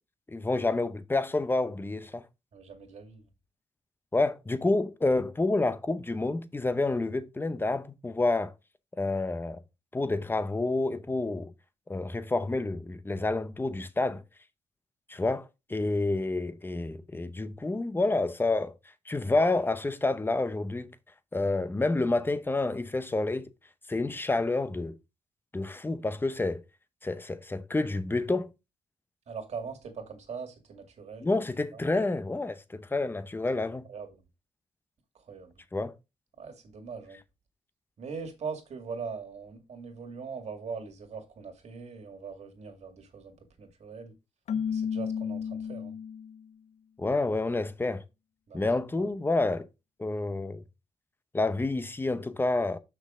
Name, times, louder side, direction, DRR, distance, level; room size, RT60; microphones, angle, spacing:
voice 1, 0.3-2.2 4.1-8.5 9.0-9.6 9.9-11.5 11.9-14.2 15.1-18.7 19.1-20.9 21.3-23.5 23.9-24.9 25.5-26.6 27.0-28.5 31.2-33.8 35.7-35.9 47.0-48.0 48.5-49.7 50.0-50.6 51.3-52.8, left 2 dB, 15° left, 0.8 m, -29 dB
voice 2, 2.5-3.2 29.3-31.3 31.7-31.8 33.9-34.2 35.2-35.5 36.4-37.2 38.0-44.1 44.7-45.9 48.5-48.6 49.0-49.1 50.1-50.3, right 5 dB, 60° right, 2.2 m, -41 dB
Keyboard (musical), 44.5-46.5, left 7 dB, 60° left, 0.6 m, -32 dB
6.3 x 5.9 x 3.8 m
cardioid pair, 85°, 12 cm